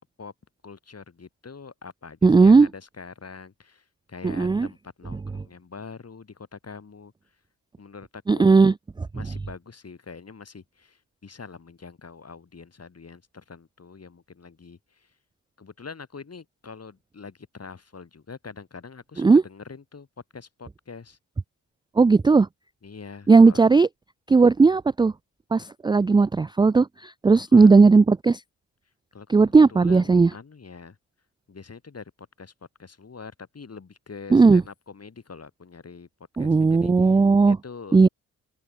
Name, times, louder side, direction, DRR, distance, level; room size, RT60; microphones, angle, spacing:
voice 1, 0.6-7.1 7.8-8.5 9.1-15.1 15.6-20.1 20.3-21.2 22.8-23.7 27.5-27.7 29.1-31.0 31.5-32.5 32.8-36.1 36.4-38.1, left 5 dB, 40° left, 4.1 m, -44 dB
voice 2, 2.2-2.7 4.2-4.7 8.3-8.7 19.2-19.4 22.0-22.5 23.3-23.9 24.3-25.1 25.5-28.4 29.3-30.3 34.3-34.6 36.4-37.6 37.9-38.1, right 4 dB, 10° right, 0.4 m, -16 dB
open air
hypercardioid pair, 45°, 40 cm